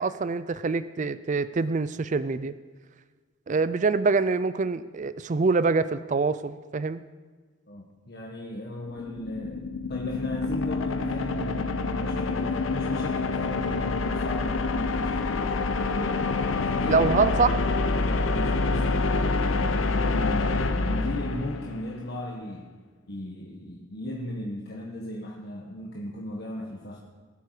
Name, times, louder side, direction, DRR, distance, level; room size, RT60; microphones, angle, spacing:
voice 1, 0.0-2.5 3.5-7.0 16.8-17.6, right 4 dB, 40° right, 14 dB, 0.4 m, -25 dB
voice 2, 7.7-16.2 16.5-17.0 17.3-22.7 23.1-27.0, left 1 dB, 55° left, 0 dB, 1.3 m, -36 dB
sound 1, 8.8-21.9, left 3 dB, 85° left, 0.8 m, -27 dB
19.5 x 8.5 x 5.0 m, 1.4 s
head